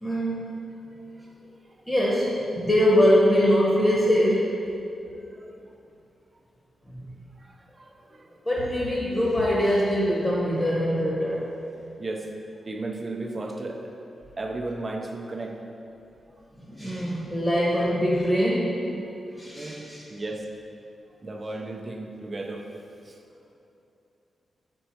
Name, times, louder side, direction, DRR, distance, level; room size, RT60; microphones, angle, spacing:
voice 1, 0.0-0.5 1.9-4.5 6.9-7.0 8.4-11.4 16.7-18.8 19.4-20.0, equal, 20° left, -5 dB, 1.2 m, -23 dB
voice 2, 0.9-1.9 5.3-5.5 7.4-8.4 12.0-12.3 12.6-13.9 14.4-15.7 19.0-19.2 19.6-20.5 21.1-23.2, right 2 dB, 35° right, 3 dB, 0.6 m, -36 dB
5.4 x 4.4 x 4.4 m, 2.7 s
cardioid pair, 95°, 0 cm